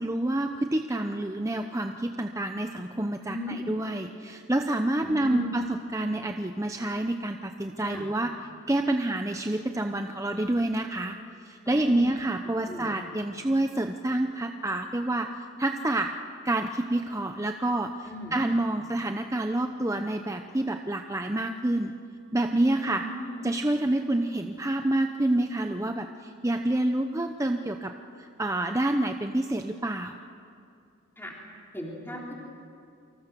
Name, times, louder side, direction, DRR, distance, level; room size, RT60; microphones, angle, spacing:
voice 1, 0.0-8.3 8.7-11.2 11.4-15.3 15.6-16.1 16.4-21.9 22.3-23.0 23.4-27.9 28.2-30.2, right 1 dB, 15° right, 5 dB, 0.7 m, -28 dB
voice 2, 3.3-3.6 5.0-5.6 7.8-8.1 11.7-12.1 12.7-12.9 18.0-18.4 22.7-23.5 31.2-31.3 31.7-32.3, left 1 dB, 10° left, -2 dB, 3.9 m, -37 dB
28.5 x 24.5 x 6.9 m, 2.4 s
head